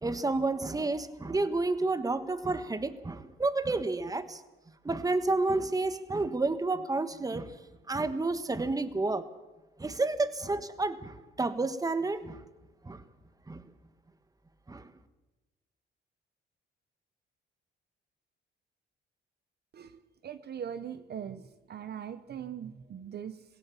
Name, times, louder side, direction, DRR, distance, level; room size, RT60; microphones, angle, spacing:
voice 1, 0.0-4.4 4.8-7.6 7.9-9.2 9.8-12.4 12.8-13.0 13.5-13.6 14.7-14.9, right 3 dB, 20° right, 12 dB, 1.4 m, -30 dB
voice 2, 19.7-23.4, right 8 dB, 55° right, 13 dB, 1.0 m, -41 dB
21.5 x 17.0 x 7.2 m, 1.1 s
cardioid pair, 90°, 20 cm